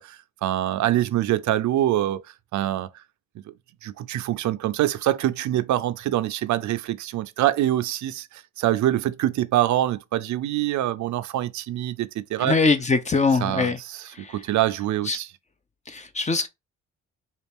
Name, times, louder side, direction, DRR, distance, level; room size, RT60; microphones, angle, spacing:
voice 1, 0.0-2.2 2.5-2.9 3.8-12.6 13.4-14.0 14.3-15.3, right 13 dB, 70° right, 0.5 m, -25 dB
voice 2, 12.4-13.8 14.1-14.4 15.1-15.2 15.9-16.5, left 4 dB, 25° left, 0.7 m, -22 dB
4.0 x 2.5 x 3.5 m
cardioid pair, 90°, 30 cm